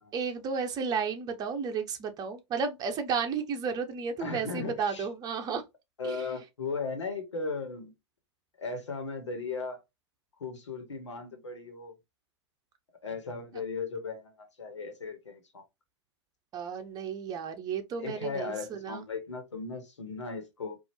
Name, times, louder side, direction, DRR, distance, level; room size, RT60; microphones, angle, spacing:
voice 1, 0.1-5.6 6.0-6.2 16.5-19.0, right 6 dB, 25° right, 0.9 m, -33 dB
voice 2, 4.2-5.1 6.0-7.9 8.6-9.8 10.4-11.9 13.0-15.6 18.0-20.8, left 4 dB, 80° left, 1.3 m, -37 dB
4.4 x 2.7 x 2.8 m
hypercardioid pair, 110°, 15 cm